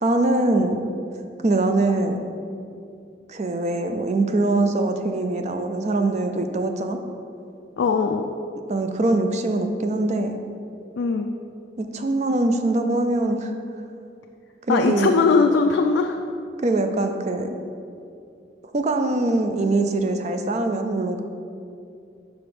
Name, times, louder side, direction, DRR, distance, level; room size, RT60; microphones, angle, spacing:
voice 1, 0.0-0.9 1.4-2.3 3.3-7.0 8.7-10.4 11.8-13.5 14.7-15.2 16.6-17.6 18.7-21.2, right 2 dB, 35° right, 6 dB, 0.4 m, -23 dB
voice 2, 7.8-8.3 11.0-11.3 14.7-16.2, left 4 dB, 70° left, 3 dB, 0.3 m, -20 dB
5.2 x 5.0 x 4.8 m, 2.5 s
head